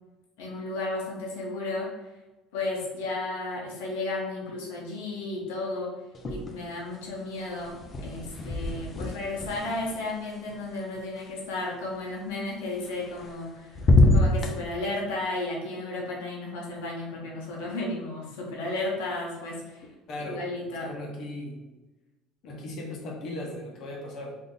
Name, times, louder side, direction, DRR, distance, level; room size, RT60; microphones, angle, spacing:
voice 1, 0.4-1.9 2.5-5.9 6.3-13.8 14.1-19.8 20.3-20.9, left 2 dB, 85° left, -2 dB, 0.9 m, -33 dB
sound 1, 6.1-6.9 7.1-11.2 12.9-13.5 13.7-14.5, left 2 dB, 35° left, 0.5 m, -25 dB
voice 2, 20.1-20.4 20.8-21.6 22.4-24.3, left 1 dB, 55° left, -1 dB, 0.8 m, -37 dB
2.6 x 2.5 x 3.7 m, 1.1 s
supercardioid pair, 95°, 0 cm